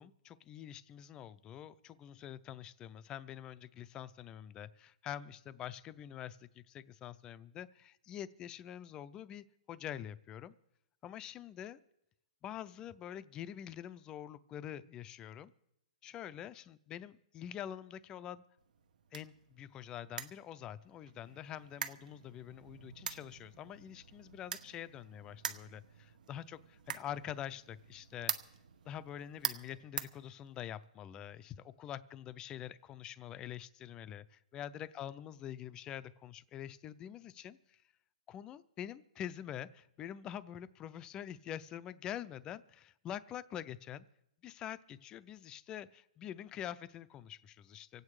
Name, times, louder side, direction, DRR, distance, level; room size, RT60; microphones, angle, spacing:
voice 1, 0.0-10.5 11.0-11.8 12.4-15.5 16.0-18.4 19.1-28.3 28.9-37.8 38.3-44.1 44.4-48.0, left 10 dB, 15° left, 16 dB, 0.4 m, -46 dB
sound 1, 18.6-30.9, right 8 dB, 75° right, 1.0 m, -45 dB
25.5 x 8.7 x 4.8 m, 0.82 s
hypercardioid pair, 165°, 4 cm